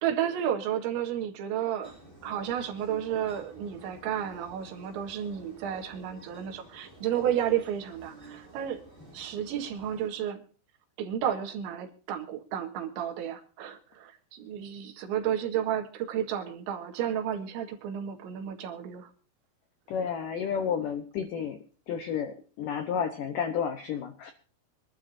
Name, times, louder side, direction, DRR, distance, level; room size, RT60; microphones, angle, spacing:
voice 1, 0.0-1.9 2.2-8.8 9.1-10.4 11.0-19.1, right 10 dB, 80° right, 3 dB, 4.0 m, -32 dB
sound 1, 1.8-10.1, right 2 dB, 5° left, 5.8 m, -51 dB
voice 2, 19.9-21.6 21.9-24.3, left 7 dB, 80° left, 8 dB, 1.9 m, -31 dB
25.5 x 12.0 x 2.7 m, 0.39 s
omnidirectional pair, 5.3 m